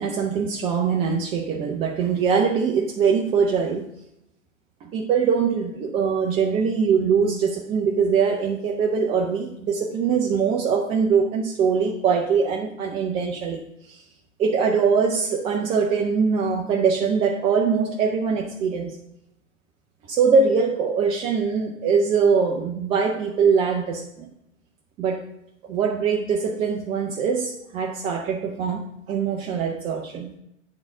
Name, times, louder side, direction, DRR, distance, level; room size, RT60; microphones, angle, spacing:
voice 1, 0.0-3.8 4.8-13.6 13.9-14.0 14.4-19.0 20.1-24.3 25.0-25.2 25.7-30.3, right 6 dB, 15° right, -1 dB, 0.5 m, -22 dB
8.7 x 3.8 x 4.6 m, 0.82 s
figure-of-eight pair, 100°, 38 cm